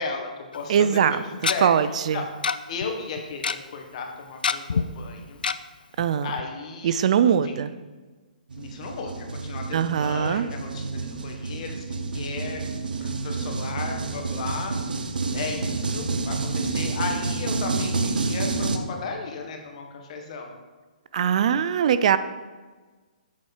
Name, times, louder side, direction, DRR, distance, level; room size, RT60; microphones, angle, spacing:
voice 1, 0.0-1.7 2.1-2.3 2.7-5.4 6.2-7.1 7.4-7.5 8.5-12.6 13.0-20.5, left 4 dB, 45° left, 3 dB, 1.5 m, -35 dB
Tick-tock, 0.5-0.6 1.4-1.6 2.4-2.6 2.8-2.9 3.2-3.6 4.4-4.8 5.4-5.5 6.0-6.1 6.4-6.5, left 5 dB, 85° left, 0.4 m, -24 dB
voice 2, 0.7-1.2 1.6-2.2 6.0-6.3 6.8-7.7 9.7-10.5 21.1-22.2, right 8 dB, 50° right, 13 dB, 0.4 m, -21 dB
sound 1, 8.5-18.8, right 3 dB, 80° right, 0.8 m, -29 dB
7.5 x 4.3 x 6.5 m, 1.3 s
hypercardioid pair, 150°, 5 cm